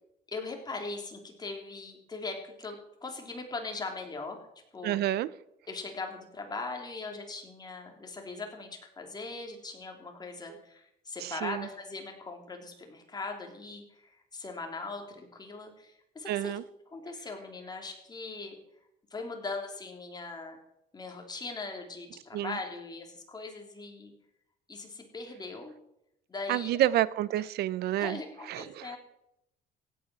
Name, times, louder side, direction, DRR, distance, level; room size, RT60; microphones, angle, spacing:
voice 1, 0.3-4.4 4.7-5.0 5.7-16.6 16.9-18.6 19.1-20.6 20.9-24.1 24.7-25.7 26.3-26.9 28.0-29.0, left 3 dB, 25° left, 3 dB, 3.2 m, -40 dB
voice 2, 4.8-5.3 10.5-10.6 11.2-11.7 16.3-16.6 22.3-22.6 26.5-28.2 28.5-29.0, right 13 dB, 70° right, 19 dB, 0.7 m, -29 dB
16.0 x 9.2 x 6.2 m, 0.81 s
cardioid pair, 110°, 17 cm